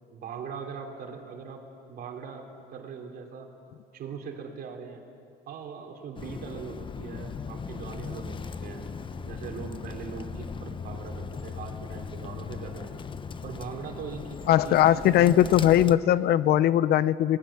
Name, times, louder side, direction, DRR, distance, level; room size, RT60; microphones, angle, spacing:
voice 1, 0.1-1.6 1.9-3.5 3.9-5.0 5.5-8.8 9.2-12.9 13.4-15.3, right 6 dB, 65° right, 3 dB, 3.3 m, -41 dB
Bird, 6.1-16.0, left 5 dB, 30° left, 0.9 m, -38 dB
voice 2, 14.5-17.4, left 12 dB, 70° left, 17 dB, 0.7 m, -20 dB
27.5 x 20.0 x 7.3 m, 2.4 s
cardioid pair, 110°, 17 cm